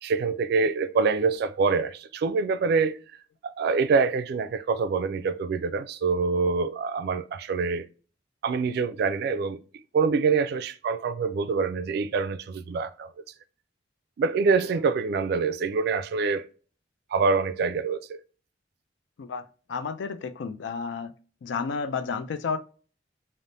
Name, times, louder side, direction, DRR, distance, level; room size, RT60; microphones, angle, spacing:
voice 1, 0.0-3.0 3.4-7.9 8.4-9.6 9.9-13.1 14.2-16.5 17.1-18.2, right 4 dB, 60° right, 0.3 m, -25 dB
voice 2, 19.7-21.1 21.4-22.6, left 5 dB, 85° left, 0.4 m, -31 dB
3.2 x 2.0 x 2.6 m
head